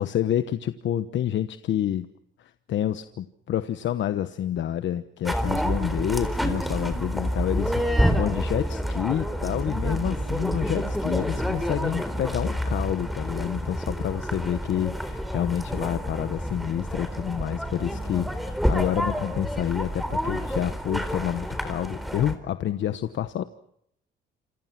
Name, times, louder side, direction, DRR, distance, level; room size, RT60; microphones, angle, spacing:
voice 1, 0.0-2.1 2.4-23.4, left 11 dB, 70° left, 11 dB, 1.1 m, -28 dB
sound 1, 5.3-22.4, equal, ahead, 4.1 m, -28 dB
28.0 x 25.5 x 6.0 m, 0.72 s
cardioid pair, 90°, 20 cm